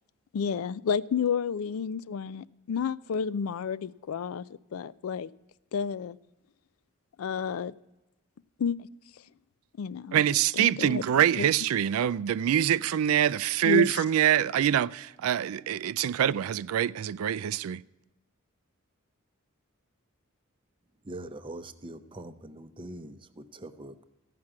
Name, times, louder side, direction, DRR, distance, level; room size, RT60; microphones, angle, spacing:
voice 1, 0.3-4.5 4.7-5.3 5.7-6.2 7.2-7.7 8.6-8.9 9.8-10.2 10.5-11.0 11.4-11.5 13.6-13.9, left 6 dB, 80° left, 0.4 m, -30 dB
voice 2, 10.1-17.8, right 10 dB, 80° right, 0.3 m, -25 dB
voice 3, 21.0-24.0, right 1 dB, 25° right, 0.6 m, -43 dB
14.5 x 6.0 x 8.6 m
head